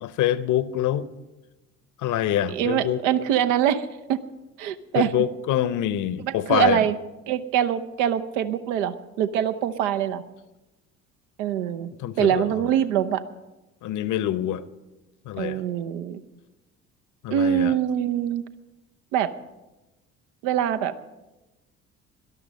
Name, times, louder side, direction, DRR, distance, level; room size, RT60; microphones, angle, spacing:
voice 1, 0.0-1.1 2.0-3.0 4.9-6.8 12.0-12.4 13.8-14.6 15.3-15.6 17.2-17.7, left 11 dB, 50° left, 0.8 m, -25 dB
voice 2, 2.5-4.2 4.6-5.1 6.2-7.0 7.3-10.2 11.4-11.9 12.2-13.2 15.4-16.2 17.3-18.4 19.1-19.3 20.4-20.9, right 10 dB, 70° right, 0.9 m, -24 dB
17.5 x 12.0 x 5.3 m
figure-of-eight pair, 50°, 40 cm